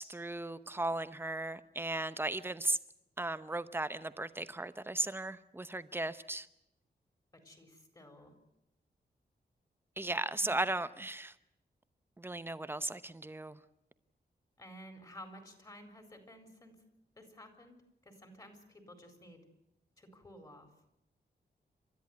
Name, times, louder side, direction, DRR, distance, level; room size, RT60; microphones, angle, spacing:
voice 1, 0.0-2.8 3.2-6.5 10.0-11.3 12.2-13.6, right 2 dB, 10° right, 0.8 m, -36 dB
voice 2, 7.3-8.3 10.4-10.7 14.6-16.8 17.2-19.4 20.0-20.7, equal, 20° left, 4.2 m, -53 dB
29.5 x 13.5 x 9.4 m
wide cardioid pair, 155°, 18 cm